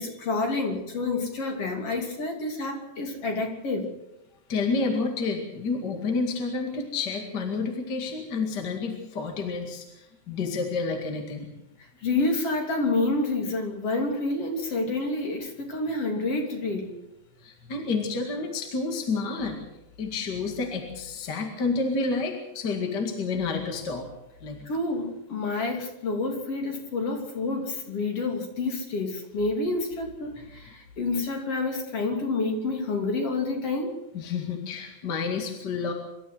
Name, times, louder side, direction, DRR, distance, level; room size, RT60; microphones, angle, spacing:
voice 1, 0.0-3.9 12.0-17.0 24.7-33.9, left 3 dB, 55° left, 2 dB, 3.9 m, -28 dB
voice 2, 4.5-9.8 10.3-11.5 17.4-19.6 20.0-24.1 24.4-24.6 34.1-35.9, left 4 dB, 40° left, 3 dB, 2.6 m, -29 dB
25.5 x 13.0 x 7.9 m, 0.90 s
omnidirectional pair, 3.3 m